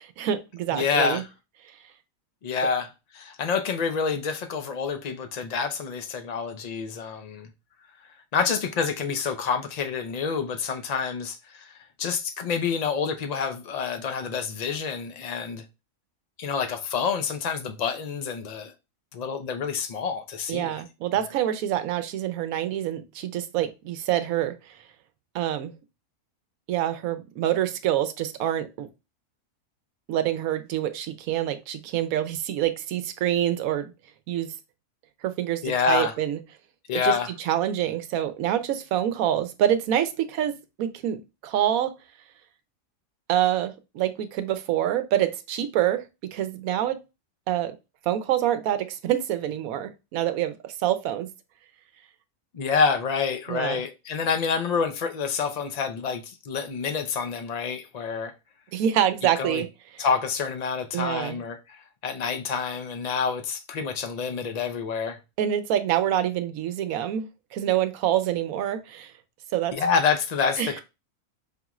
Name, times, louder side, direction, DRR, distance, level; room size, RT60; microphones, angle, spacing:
voice 1, 0.2-1.2 20.5-24.8 25.3-25.7 26.7-28.9 30.1-33.9 34.3-34.5 35.2-36.4 36.9-41.9 43.3-47.0 47.5-47.8 48.1-51.3 53.5-53.8 58.7-59.7 59.9-60.0 60.9-61.4 65.4-69.1 69.5-69.8 70.6-70.8, right 11 dB, 85° right, 1.0 m, -26 dB
voice 2, 0.7-1.3 2.4-2.9 3.1-7.5 8.3-11.7 12.0-15.6 16.4-18.7 19.1-20.8 35.6-36.1 36.9-37.3 52.5-58.3 59.4-59.6 60.0-65.2 69.7-70.8, left 6 dB, 75° left, 0.3 m, -27 dB
5.4 x 2.4 x 2.9 m
omnidirectional pair, 1.5 m